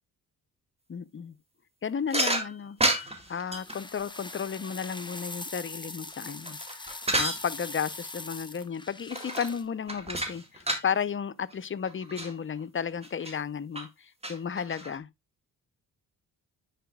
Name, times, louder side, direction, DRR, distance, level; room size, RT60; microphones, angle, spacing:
voice 1, 0.9-1.3 1.8-6.6 6.9-15.1, left 7 dB, 30° left, 0.6 m, -33 dB
sound 1, 2.1-3.8 6.1-7.4 9.1-9.6 9.9-10.9 11.5-11.6 11.8-12.3 13.0-13.3 13.8-13.9 14.2-15.0, right 1 dB, 15° right, 2.1 m, -30 dB
sound 2, 3.5-9.6, left 2 dB, 10° left, 1.0 m, -42 dB
10.0 x 4.8 x 2.2 m
supercardioid pair, 55°, 41 cm